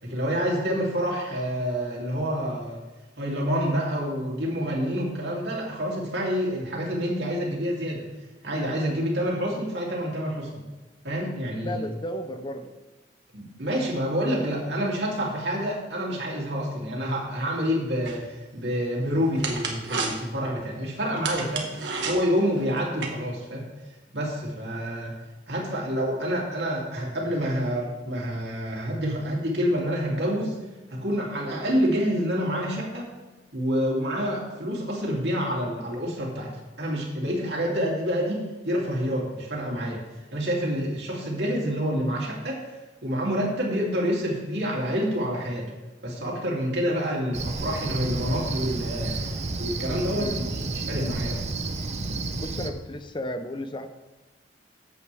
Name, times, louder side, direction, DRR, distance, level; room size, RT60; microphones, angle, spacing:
voice 1, 0.0-2.8 3.2-8.0 8.4-10.6 11.0-11.8 13.3-21.7 22.0-23.7 24.1-25.1 25.5-30.6 30.9-33.1 33.5-36.5 36.8-40.0 40.3-42.7 43.0-45.7 46.0-49.1 49.6-51.5, equal, 70° right, -3 dB, 2.8 m, -27 dB
voice 2, 11.6-12.7 50.2-50.4 52.3-53.9, left 1 dB, 25° left, 9 dB, 0.6 m, -34 dB
sound 1, 18.1-23.1, right 4 dB, 85° right, 1.6 m, -34 dB
Cricket, 47.3-52.7, right 3 dB, 40° right, 0.7 m, -31 dB
13.5 x 8.4 x 3.4 m, 1.1 s
head